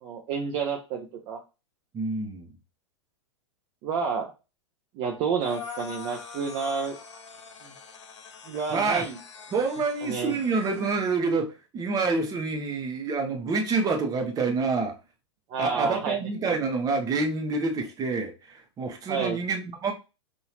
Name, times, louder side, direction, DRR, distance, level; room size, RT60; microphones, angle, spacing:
voice 1, 0.0-1.4 3.8-4.3 4.9-7.0 7.6-7.7 8.5-9.2 10.0-10.4 15.5-16.2 16.4-16.5 19.1-19.4, right 5 dB, 40° right, 0.8 m, -30 dB
voice 2, 1.9-2.5 8.7-9.0 9.5-15.0 15.6-19.9, right 4 dB, 25° right, 1.1 m, -27 dB
sound 1, 5.4-11.0, left 6 dB, 75° left, 0.8 m, -44 dB
5.5 x 2.7 x 2.9 m
figure-of-eight pair, 100°, 15 cm